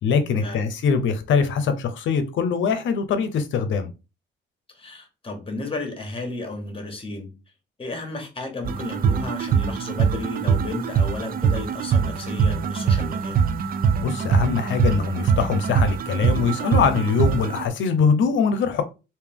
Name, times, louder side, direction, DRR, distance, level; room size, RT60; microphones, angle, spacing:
voice 1, 0.0-3.9 14.0-18.8, left 6 dB, 75° left, 0.7 m, -22 dB
voice 2, 4.7-7.3 7.8-13.4, left 2 dB, 25° left, 1.4 m, -33 dB
sound 1, 8.6-17.7, right 6 dB, 50° right, 0.4 m, -23 dB
3.4 x 2.7 x 3.5 m
cardioid pair, 90°, 20 cm